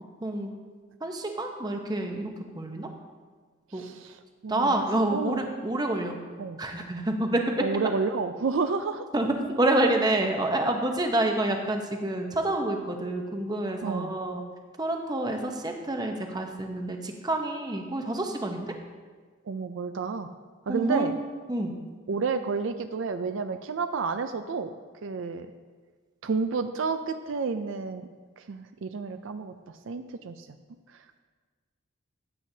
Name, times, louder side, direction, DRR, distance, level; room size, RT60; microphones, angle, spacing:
voice 1, 1.0-2.9 3.7-3.8 4.5-6.2 6.6-7.6 9.1-9.3 9.6-14.4 14.8-18.7 20.7-21.1 21.5-21.7, right 1 dB, 20° right, 3 dB, 0.8 m, -28 dB
voice 2, 3.7-4.8 5.1-5.5 6.4-6.6 7.6-9.1 13.8-14.1 19.4-20.3 20.7-21.1 22.1-24.7 25.0-25.5 26.2-28.1 28.4-30.5 30.9-31.2, right 4 dB, 60° right, 9 dB, 0.4 m, -30 dB
15.5 x 8.2 x 2.7 m, 1.5 s
head